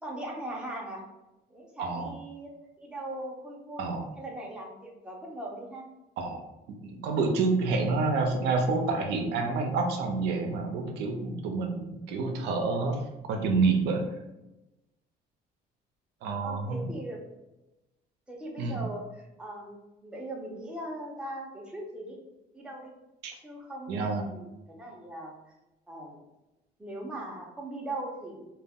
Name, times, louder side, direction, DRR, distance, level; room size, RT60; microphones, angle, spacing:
voice 1, 0.0-1.0 1.5-2.5 2.8-3.9 4.2-5.9 16.4-17.3 18.3-22.2 22.5-22.9 23.4-25.5 25.9-26.2 26.8-28.5, right 1 dB, 5° right, -2 dB, 0.6 m, -39 dB
voice 2, 1.8-2.1 3.8-4.1 6.2-6.4 6.8-13.0 13.2-14.0 16.2-16.9 18.6-18.8 23.2-23.3 23.9-24.2, right 4 dB, 85° right, 3 dB, 0.5 m, -28 dB
2.3 x 2.0 x 3.5 m, 0.98 s
cardioid pair, 110°, 17 cm